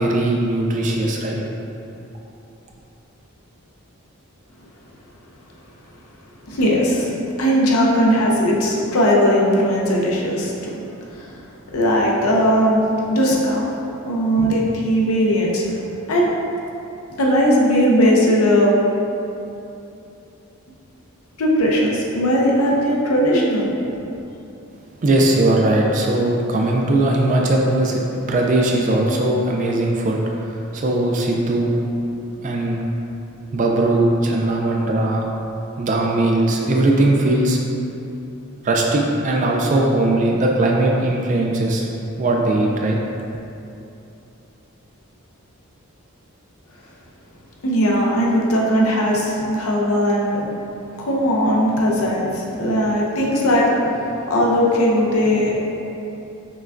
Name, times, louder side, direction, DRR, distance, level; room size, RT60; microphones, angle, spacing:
voice 1, 0.0-1.4 25.0-31.8 32.4-32.8 33.5-35.2 35.8-37.6 38.6-41.9 42.2-43.0, right 2 dB, 35° right, 0 dB, 0.3 m, -19 dB
voice 2, 6.5-11.4 11.7-12.8 13.1-13.7 14.0-15.8 16.1-16.3 17.2-18.7 21.4-23.7 47.6-50.5 51.0-55.5, equal, 75° left, -3 dB, 0.6 m, -18 dB
5.9 x 2.2 x 2.5 m, 2.8 s
head